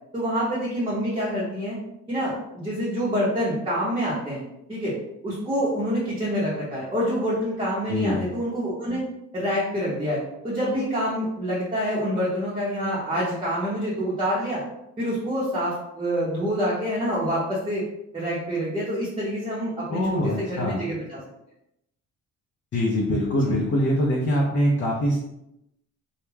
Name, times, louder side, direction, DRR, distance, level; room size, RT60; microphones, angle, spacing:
voice 1, 0.1-1.8 2.1-4.4 4.7-4.9 5.2-9.0 9.3-14.6 15.0-17.8 18.1-21.2 23.4-23.6, equal, 15° right, -7 dB, 0.7 m, -27 dB
voice 2, 7.9-8.3 19.9-20.8 22.7-25.2, equal, 40° left, -3 dB, 0.5 m, -23 dB
2.3 x 2.1 x 3.2 m, 0.84 s
cardioid pair, 115°, 30 cm